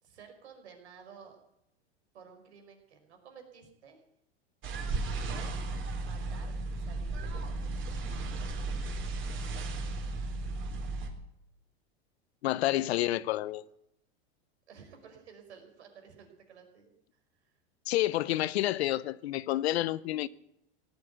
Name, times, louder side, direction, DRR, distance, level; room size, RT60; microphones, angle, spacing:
voice 1, 0.0-1.4 2.1-4.0 5.3-5.6 6.0-7.7 14.7-16.9, right 6 dB, 85° right, 5.2 m, -53 dB
sound 1, 4.6-11.1, right 3 dB, 35° right, 3.5 m, -35 dB
voice 2, 12.4-13.6 17.9-20.3, left 15 dB, 75° left, 0.9 m, -29 dB
17.5 x 8.7 x 9.3 m
hypercardioid pair, 115°, 32 cm